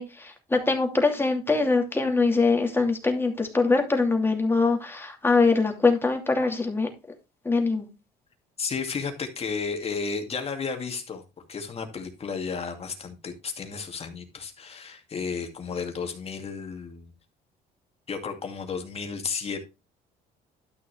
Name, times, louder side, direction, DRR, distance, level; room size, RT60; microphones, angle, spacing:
voice 1, 0.0-6.9 7.4-7.8, left 3 dB, 15° left, 2.7 m, -23 dB
voice 2, 8.6-11.2 11.5-17.1 18.1-19.6, left 5 dB, 35° left, 2.5 m, -33 dB
12.5 x 6.1 x 3.3 m
cardioid pair, 110°, 17 cm